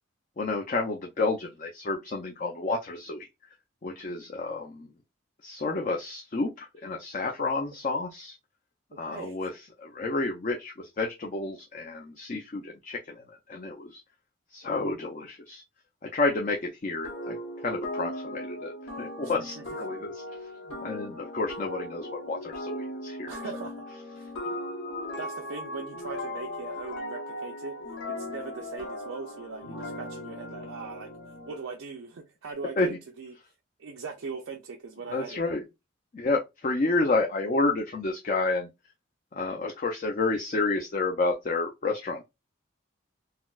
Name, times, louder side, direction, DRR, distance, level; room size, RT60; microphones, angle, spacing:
voice 1, 0.4-3.3 3.8-4.9 5.4-8.4 9.0-9.5 9.8-14.0 14.5-15.6 16.1-17.4 17.6-18.7 19.0-20.2 20.8-23.3 32.8-32.9 35.1-35.6 36.1-38.7 39.3-42.2, left 3 dB, 40° left, 0.4 m, -30 dB
voice 2, 9.1-9.5 19.2-19.8 23.3-23.9 24.2-24.3 25.1-27.8 28.1-31.1 31.5-33.4 33.8-35.4, right 5 dB, 80° right, 0.4 m, -40 dB
sound 1, 17.0-31.7, left 1 dB, 85° left, 0.9 m, -38 dB
4.1 x 2.0 x 2.3 m
head